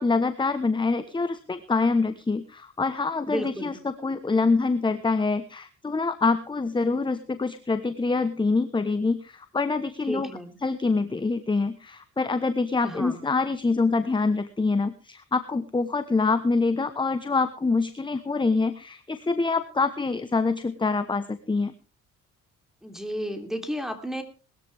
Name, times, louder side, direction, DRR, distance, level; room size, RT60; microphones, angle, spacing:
voice 1, 0.0-10.3 10.6-21.7, left 3 dB, 15° left, 11 dB, 1.0 m, -25 dB
voice 2, 3.3-3.8 10.1-10.6 12.8-13.2 22.8-24.2, equal, ahead, 6 dB, 3.3 m, -32 dB
20.0 x 13.5 x 3.5 m, 0.33 s
cardioid pair, 90°, 30 cm